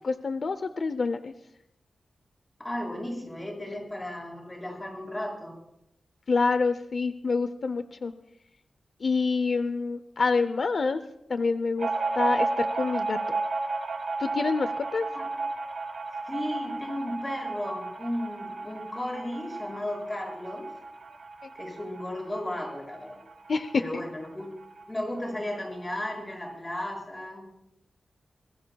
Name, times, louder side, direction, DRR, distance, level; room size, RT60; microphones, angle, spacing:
voice 1, 0.0-1.3 6.3-8.1 9.0-11.0 11.3-11.9 12.2-13.4 14.2-15.1 23.5-24.0, left 4 dB, 55° left, 11 dB, 0.6 m, -27 dB
voice 2, 2.6-5.5 15.1-15.3 16.3-20.7 21.6-23.2 23.8-24.5 24.9-27.4, left 1 dB, 20° left, 0 dB, 6.8 m, -34 dB
sound 1, 11.8-24.9 25.2-25.3 25.6-26.3, right 3 dB, 70° right, 2.3 m, -33 dB
25.5 x 20.0 x 2.3 m, 0.82 s
wide cardioid pair, 105°, 0 cm